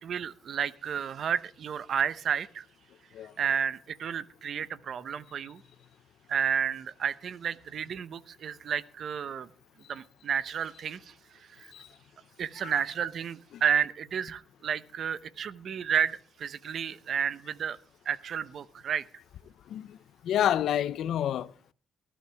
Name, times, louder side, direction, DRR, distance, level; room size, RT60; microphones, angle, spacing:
voice 1, 0.0-2.7 3.4-5.6 6.3-9.5 9.9-11.7 12.4-17.8 18.0-19.0, right 8 dB, 60° right, 0.8 m, -31 dB
voice 2, 20.2-21.7, left 10 dB, 75° left, 0.6 m, -29 dB
19.0 x 12.5 x 3.5 m
cardioid pair, 90°, 0 cm